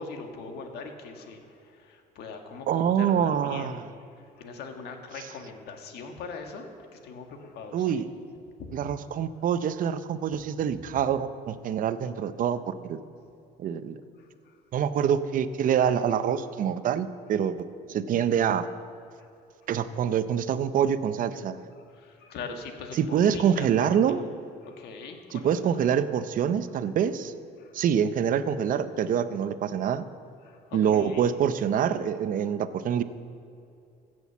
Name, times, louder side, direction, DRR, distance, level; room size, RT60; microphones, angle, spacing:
voice 1, 0.0-3.8 4.3-6.7 6.9-8.1 8.6-8.9 14.2-14.6 19.2-19.3 21.8-23.9 24.6-25.9 27.6-27.8 30.4-31.3, left 4 dB, 75° left, 4 dB, 1.6 m, -41 dB
voice 2, 2.7-3.8 7.7-8.1 8.7-13.0 13.6-14.0 14.7-17.6 17.9-18.7 19.7-21.6 23.0-24.2 25.3-27.3 27.7-30.0 30.7-33.0, right 8 dB, 55° right, 13 dB, 0.6 m, -25 dB
15.5 x 6.3 x 7.2 m, 2.5 s
cardioid pair, 110°, 17 cm